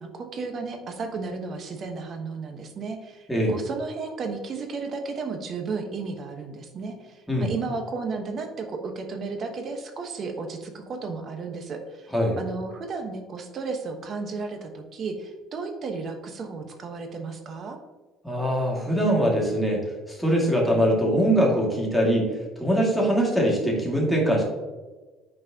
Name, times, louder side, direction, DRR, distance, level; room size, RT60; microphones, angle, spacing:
voice 1, 0.0-17.8, right 4 dB, 45° right, 5 dB, 1.2 m, -34 dB
voice 2, 18.2-22.3 22.6-24.4, equal, ahead, -3 dB, 2.2 m, -22 dB
8.8 x 4.6 x 2.9 m, 1.2 s
cardioid pair, 100°, 0 cm